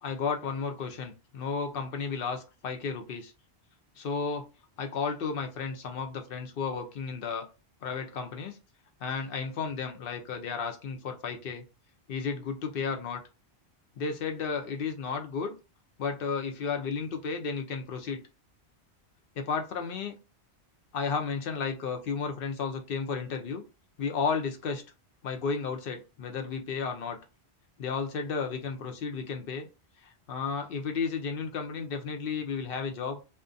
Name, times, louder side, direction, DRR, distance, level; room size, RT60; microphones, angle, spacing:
voice 1, 0.0-3.3 4.0-4.4 4.8-7.4 7.8-8.6 9.0-11.6 12.1-13.2 14.0-15.5 16.0-18.2 19.4-20.1 20.9-23.6 24.0-24.8 25.2-27.2 27.8-29.7 30.3-33.3, left 5 dB, 65° left, 5 dB, 0.7 m, -33 dB
2.4 x 2.1 x 2.5 m, 0.30 s
omnidirectional pair, 1.1 m